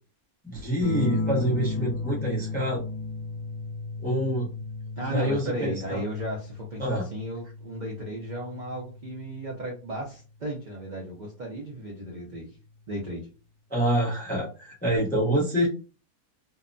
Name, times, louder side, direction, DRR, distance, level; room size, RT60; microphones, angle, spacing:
voice 1, 0.4-2.8 4.0-4.5 5.1-6.0 6.8-7.1 13.7-15.7, right 1 dB, 15° left, -4 dB, 0.3 m, -26 dB
sound 1, 0.8-9.9 11.3-11.9, left 3 dB, 65° left, 0.9 m, -34 dB
voice 2, 5.0-12.6 12.9-13.3, right 1 dB, 75° right, -2 dB, 0.4 m, -35 dB
2.8 x 2.1 x 2.5 m, 0.35 s
omnidirectional pair, 1.6 m